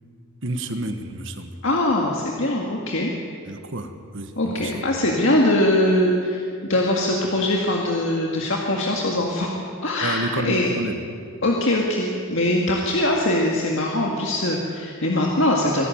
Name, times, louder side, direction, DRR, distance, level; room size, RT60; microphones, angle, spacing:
voice 1, 0.4-1.5 3.5-4.9 10.0-11.0, right 1 dB, 65° right, 7 dB, 1.6 m, -29 dB
voice 2, 1.6-3.1 4.4-6.4 6.7-10.7 11.4-15.9, left 1 dB, 65° left, -1 dB, 2.0 m, -22 dB
24.0 x 12.0 x 9.3 m, 2.4 s
head